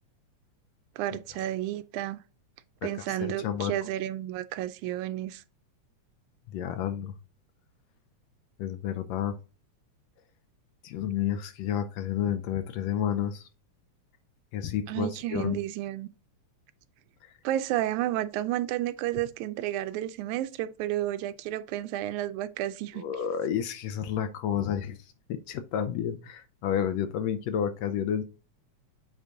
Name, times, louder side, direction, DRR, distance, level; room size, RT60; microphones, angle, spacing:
voice 1, 1.0-2.2 2.8-5.4 14.9-16.1 17.4-23.0, right 13 dB, 90° right, 2.0 m, -31 dB
voice 2, 3.2-3.7 6.5-7.1 8.6-9.3 10.8-13.5 14.5-15.6 22.9-25.0 25.3-28.2, left 9 dB, 80° left, 1.6 m, -30 dB
8.2 x 3.6 x 3.8 m
omnidirectional pair, 3.3 m